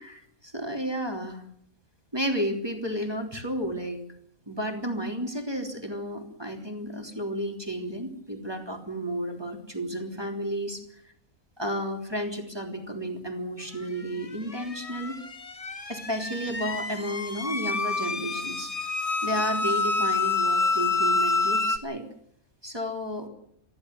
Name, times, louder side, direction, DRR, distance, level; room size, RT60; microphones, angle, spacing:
voice 1, 0.0-1.4 2.1-4.0 4.5-10.8 11.6-15.2 15.9-18.7 19.2-22.1 22.6-23.3, equal, 15° right, 3 dB, 3.4 m, -32 dB
sound 1, 14.2-21.8, left 3 dB, 25° left, 1.3 m, -28 dB
23.5 x 15.0 x 9.7 m, 0.71 s
omnidirectional pair, 1.5 m